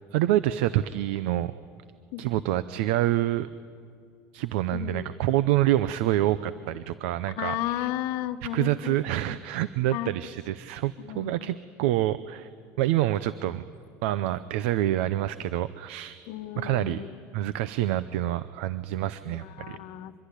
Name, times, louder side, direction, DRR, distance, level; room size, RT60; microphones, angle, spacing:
voice 1, 0.1-1.5 2.2-3.5 4.3-7.9 8.5-12.5 12.8-13.6 14.0-16.2 16.6-17.0 17.3-19.8, right 14 dB, 85° right, 14 dB, 0.7 m, -27 dB
voice 2, 4.7-5.1 7.3-9.0 9.3-9.4 9.9-10.3 11.0-11.6 16.3-17.2 19.2-20.1, left 13 dB, 60° left, 7 dB, 1.1 m, -34 dB
25.0 x 22.0 x 10.0 m, 2.3 s
cardioid pair, 160°, 7 cm